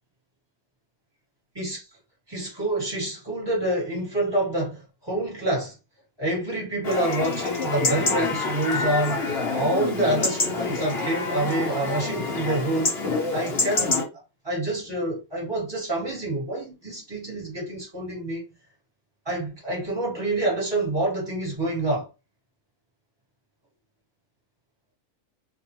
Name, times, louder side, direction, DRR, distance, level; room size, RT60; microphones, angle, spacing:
voice 1, 1.5-1.9 2.3-5.8 6.2-14.1 14.4-18.4 19.2-22.1, right 1 dB, 20° right, 1.3 m, -27 dB
Chatter / Livestock farm animals working animals / Chirp tweet, 6.8-14.0, left 3 dB, 50° left, 1.1 m, -27 dB
2.6 x 2.4 x 2.8 m
omnidirectional pair, 1.4 m